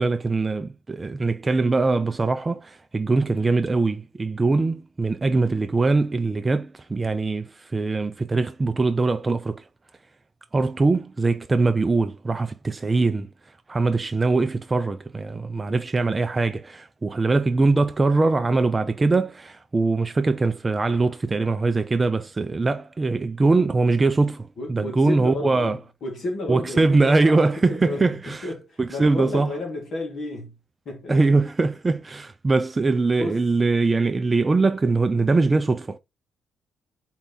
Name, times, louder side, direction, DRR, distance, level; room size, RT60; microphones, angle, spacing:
voice 1, 0.0-9.6 10.5-13.3 13.7-25.8 26.5-28.5 28.8-29.5 31.1-36.0, right 3 dB, 25° right, 0.4 m, -22 dB
voice 2, 24.6-30.6 30.9-31.4 33.2-33.5, left 1 dB, 55° left, 1.9 m, -32 dB
4.5 x 2.9 x 3.8 m
cardioid pair, 90°, 0 cm